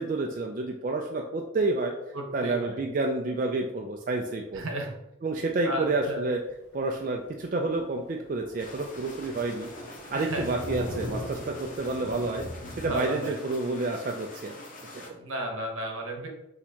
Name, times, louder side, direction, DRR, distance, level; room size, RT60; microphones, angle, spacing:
voice 1, 0.0-1.9 2.3-4.6 5.2-6.4 6.7-9.7 10.1-12.5 12.8-14.5, right 2 dB, 40° right, 1 dB, 0.3 m, -29 dB
voice 2, 2.1-2.8 4.5-4.9 5.6-6.3 10.1-10.6 12.6-13.4 15.0-16.3, right 1 dB, 75° right, 2 dB, 0.9 m, -34 dB
Thunder, 6.0-6.1 6.5-6.6 7.0-7.1 7.4-7.5 7.7-12.9, equal, 80° left, 0.8 m, -40 dB
sound 1, 8.6-15.1, left 1 dB, 40° left, 0.8 m, -46 dB
6.1 x 2.8 x 2.8 m, 0.89 s
head